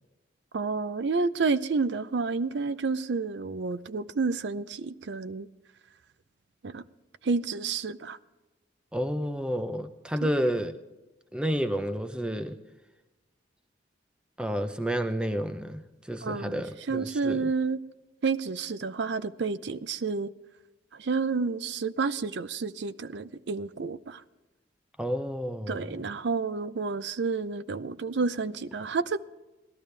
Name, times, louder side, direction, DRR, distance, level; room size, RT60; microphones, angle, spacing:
voice 1, 0.5-5.5 6.6-6.8 7.2-8.2 10.2-10.3 16.2-17.8 18.2-20.3 21.0-24.2 25.7-29.2, right 4 dB, 70° right, 0.5 m, -30 dB
voice 2, 8.9-10.8 11.3-12.6 14.4-15.8 16.1-17.5 25.0-26.0, equal, 5° right, 0.6 m, -30 dB
18.5 x 12.5 x 3.3 m
head